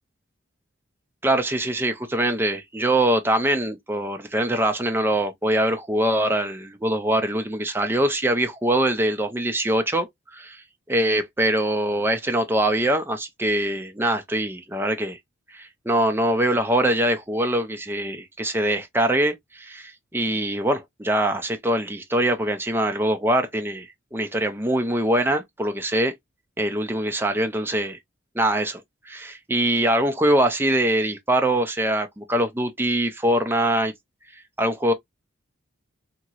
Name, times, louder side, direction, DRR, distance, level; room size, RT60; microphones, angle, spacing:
voice 1, 1.2-10.6 10.9-15.2 15.5-26.1 26.6-28.0 28.3-28.8 29.1-33.9 34.6-34.9, right 1 dB, 10° right, 0.5 m, -23 dB
2.9 x 2.8 x 2.4 m
head